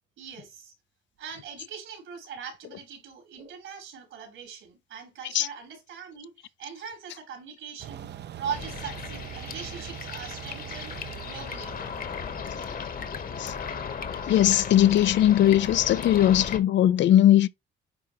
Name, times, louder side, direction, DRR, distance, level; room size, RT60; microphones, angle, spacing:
voice 1, 0.2-0.7 1.2-8.1 8.4-11.0 11.2-11.8, right 7 dB, 80° right, 4.0 m, -40 dB
sound 1, 7.8-13.5, right 11 dB, 60° right, 0.6 m, -43 dB
sound 2, 8.5-16.6, left 6 dB, 45° left, 1.2 m, -36 dB
voice 2, 14.3-17.5, left 12 dB, 70° left, 0.5 m, -19 dB
9.7 x 3.4 x 3.0 m
cardioid pair, 90°, 20 cm